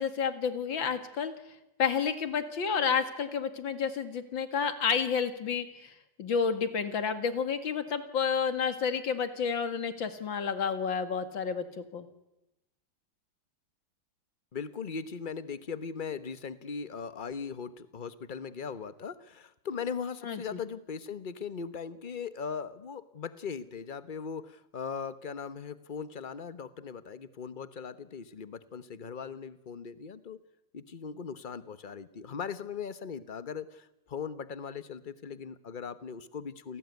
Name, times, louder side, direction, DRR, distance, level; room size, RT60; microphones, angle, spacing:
voice 1, 0.0-1.3 1.8-12.1 20.2-20.6, left 6 dB, 90° left, 10 dB, 2.8 m, -30 dB
voice 2, 14.5-30.4 30.7-36.8, left 6 dB, 35° left, 14 dB, 1.0 m, -39 dB
28.5 x 18.0 x 9.5 m, 0.94 s
omnidirectional pair, 2.0 m